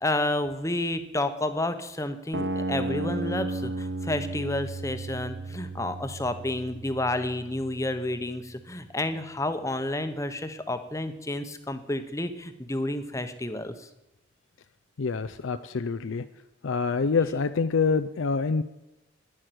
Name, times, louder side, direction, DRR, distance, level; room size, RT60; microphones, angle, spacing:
voice 1, 0.0-13.9, left 1 dB, 15° left, 9 dB, 0.9 m, -30 dB
sound 1, 2.3-8.3, right 2 dB, 60° right, 0.8 m, -34 dB
voice 2, 15.0-16.2 16.6-18.6, left 4 dB, 85° left, 10 dB, 0.5 m, -26 dB
11.0 x 10.5 x 7.8 m, 0.96 s
head